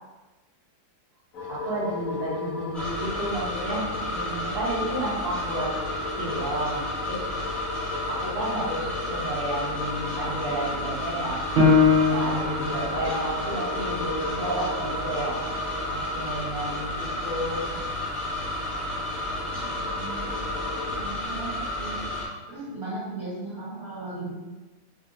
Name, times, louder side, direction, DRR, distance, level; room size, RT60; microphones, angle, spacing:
sound 1, 1.3-21.0, left 3 dB, 65° left, 0.9 m, -37 dB
voice 1, 1.5-5.7 6.2-7.3 8.1-11.4 12.1-15.3 15.9-17.7, right 1 dB, 35° right, -11 dB, 1.2 m, -31 dB
sound 2, 2.7-22.3, left 1 dB, ahead, 0.9 m, -32 dB
Piano, 11.6-16.7 17.2-17.3 17.9-18.4, left 4 dB, 90° right, 1.6 m, -25 dB
voice 2, 19.8-20.4 20.9-22.1 22.5-24.3, right 2 dB, 60° right, -10 dB, 1.9 m, -37 dB
3.7 x 2.3 x 2.6 m, 1.1 s
omnidirectional pair, 1.8 m